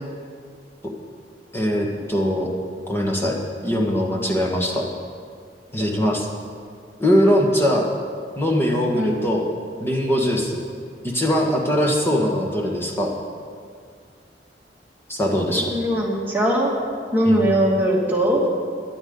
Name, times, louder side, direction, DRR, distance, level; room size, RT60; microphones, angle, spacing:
voice 1, 1.5-2.5 2.9-3.4 3.6-4.8 5.7-6.3 7.0-7.9 8.4-9.5 9.8-10.6 11.0-13.1 15.1-15.7 17.2-17.4, equal, 15° left, -1 dB, 1.7 m, -21 dB
voice 2, 15.6-16.7 17.1-18.4, right 1 dB, 10° right, -4 dB, 2.3 m, -20 dB
18.0 x 11.5 x 4.0 m, 2.1 s
head